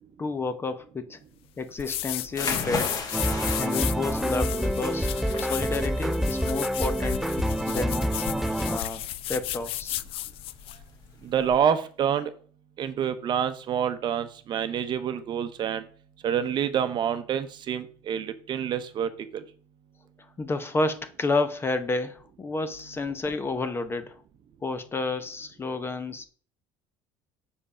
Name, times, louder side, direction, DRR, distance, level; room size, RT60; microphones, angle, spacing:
voice 1, 0.2-1.2 1.6-3.0 3.6-5.1 5.4-7.3 7.7-8.1 8.6-10.0 20.4-24.2 24.6-26.2, left 3 dB, 20° left, 0.8 m, -30 dB
sound 1, 1.8-10.8, left 14 dB, 60° left, 0.4 m, -34 dB
sound 2, 2.3-11.6, left 3 dB, 40° left, 1.9 m, -37 dB
sound 3, 3.1-8.8, equal, 5° right, 0.4 m, -27 dB
voice 2, 11.2-12.3 12.8-15.8 16.2-19.4, right 8 dB, 45° right, 0.8 m, -27 dB
6.8 x 5.2 x 5.0 m
cardioid pair, 115°, 11 cm